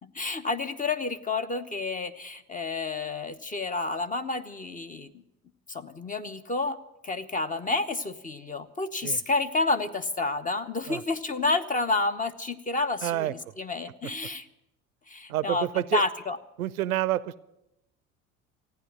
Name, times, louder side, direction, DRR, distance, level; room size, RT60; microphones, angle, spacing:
voice 1, 0.0-5.1 5.7-6.8 7.0-14.5 15.1-16.4, left 3 dB, 20° left, 11 dB, 1.0 m, -30 dB
voice 2, 13.0-13.3 15.3-16.0 16.6-17.4, right 14 dB, 80° right, 20 dB, 0.6 m, -28 dB
15.0 x 9.6 x 9.4 m, 0.90 s
hypercardioid pair, 70°, 43 cm